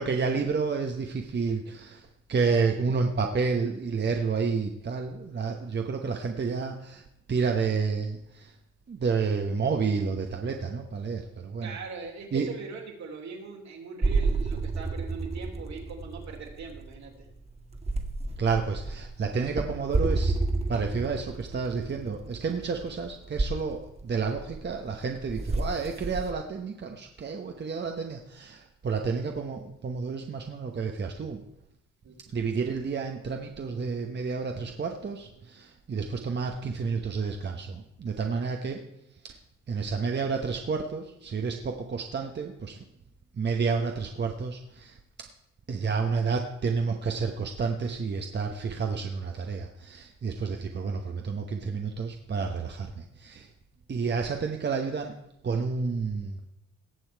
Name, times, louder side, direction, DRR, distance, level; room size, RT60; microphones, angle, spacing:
voice 1, 0.0-2.0 2.3-7.0 7.3-8.5 8.9-11.7 12.3-12.5 18.4-20.4 20.7-31.4 32.3-38.8 39.2-39.3 39.7-42.8 43.4-44.9 45.7-53.5 53.9-55.1 55.4-56.5, right 5 dB, 35° right, 4 dB, 1.1 m, -30 dB
voice 2, 11.6-17.3 32.0-32.2, right 5 dB, 65° right, 1 dB, 3.3 m, -41 dB
sound 1, 14.0-26.3, right 3 dB, 20° right, 1.5 m, -31 dB
18.0 x 7.0 x 4.6 m, 0.81 s
cardioid pair, 90°, 30 cm